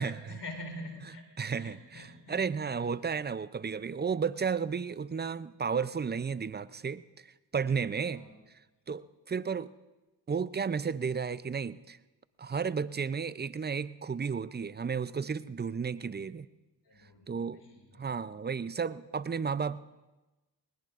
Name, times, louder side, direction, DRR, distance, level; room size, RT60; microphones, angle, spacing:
voice 1, 0.0-1.3 1.5-2.4 2.8-2.9 8.0-8.3 16.8-18.1, left 1 dB, 55° left, 3 dB, 4.1 m, -45 dB
voice 2, 1.4-8.2 8.9-9.7 10.3-12.0 12.4-16.5 17.3-17.6 18.0-19.8, right 6 dB, 20° right, 17 dB, 0.5 m, -33 dB
20.5 x 20.0 x 2.5 m, 1.1 s
supercardioid pair, 45°, 49 cm